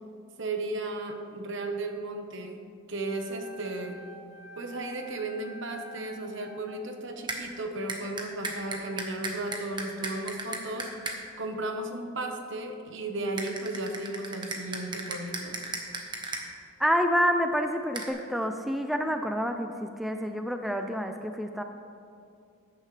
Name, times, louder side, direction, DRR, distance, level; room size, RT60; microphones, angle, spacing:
voice 1, 0.4-2.6 2.9-4.0 4.6-10.9 11.4-15.6, right 2 dB, 65° right, 4 dB, 1.2 m, -35 dB
Wind instrument woodwind instrument, 3.0-6.8, right 2 dB, 75° left, 2.8 m, -48 dB
sound 1, 7.3-7.4 7.9-11.2 13.4-16.4 17.9-18.1, right 2 dB, 25° right, 1.2 m, -35 dB
voice 2, 16.8-21.6, equal, ahead, 5 dB, 0.4 m, -28 dB
14.0 x 9.6 x 3.3 m, 2.4 s
head